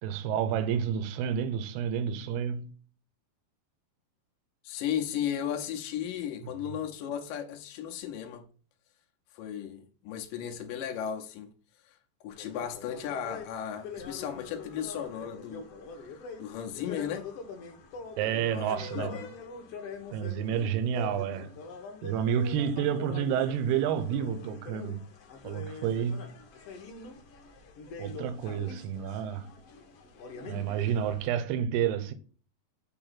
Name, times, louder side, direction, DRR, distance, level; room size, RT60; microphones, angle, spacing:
voice 1, 0.0-2.7 18.2-19.2 20.1-21.6 22.0-25.1 25.4-26.3 28.0-29.6 30.4-32.1, right 8 dB, 80° right, 2.7 m, -30 dB
voice 2, 4.6-8.4 9.3-11.5 11.9-12.0 12.2-15.7 16.1-17.3 18.5-19.3, left 9 dB, 70° left, 2.2 m, -35 dB
sound 1, 12.3-31.3, left 4 dB, 90° left, 1.3 m, -44 dB
8.8 x 3.0 x 5.7 m
omnidirectional pair, 4.7 m